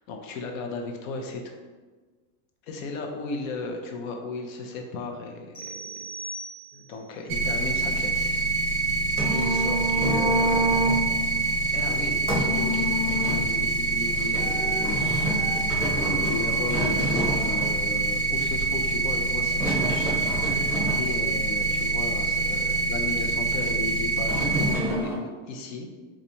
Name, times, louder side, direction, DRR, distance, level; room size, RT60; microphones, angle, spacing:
voice 1, 0.0-1.5 2.7-5.9 6.7-8.4 8.8-8.9 9.3-10.7 11.7-20.3 20.9-25.9, left 3 dB, 85° left, 3 dB, 0.7 m, -35 dB
sound 1, 5.5-7.1, right 2 dB, 10° left, 1.2 m, -39 dB
sound 2, 7.3-24.7, right 3 dB, 45° right, 0.6 m, -26 dB
sound 3, 8.7-25.1, right 1 dB, 5° right, 0.9 m, -30 dB
4.3 x 2.4 x 2.6 m, 1.4 s
supercardioid pair, 160°, 39 cm